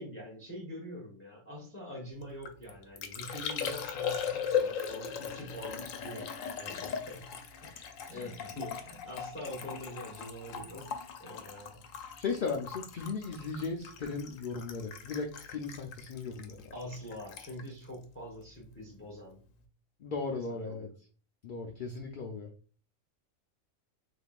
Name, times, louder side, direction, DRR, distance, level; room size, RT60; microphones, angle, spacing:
voice 1, 0.0-7.7 8.1-11.8 16.7-19.4 20.6-20.9, equal, 10° left, -3 dB, 0.8 m, -45 dB
Liquid, 2.2-18.8 19.1-19.6, left 7 dB, 75° left, 1.0 m, -39 dB
voice 2, 7.7-8.3 12.2-16.7 20.0-20.9 21.4-22.5, left 4 dB, 60° left, 1 dB, 0.5 m, -37 dB
3.6 x 3.6 x 2.4 m, 0.40 s
omnidirectional pair, 1.4 m